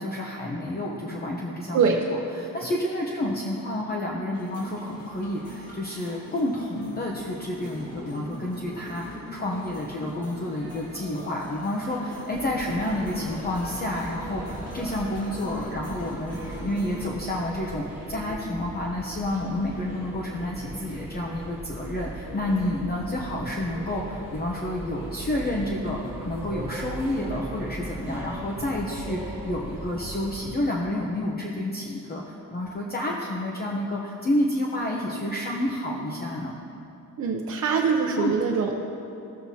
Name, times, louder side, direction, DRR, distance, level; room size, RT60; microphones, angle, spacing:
voice 1, 0.0-2.0 2.3-36.5 38.2-38.4, left 1 dB, 30° left, -2 dB, 0.8 m, -29 dB
voice 2, 1.7-2.0 37.2-38.7, right 5 dB, 55° right, 0 dB, 0.7 m, -23 dB
sound 1, 4.3-17.1, equal, 45° left, 2.6 m, -42 dB
sound 2, 12.3-30.5, right 1 dB, 10° right, 2.5 m, -38 dB
17.0 x 7.7 x 2.8 m, 2.7 s
wide cardioid pair, 150°, 34 cm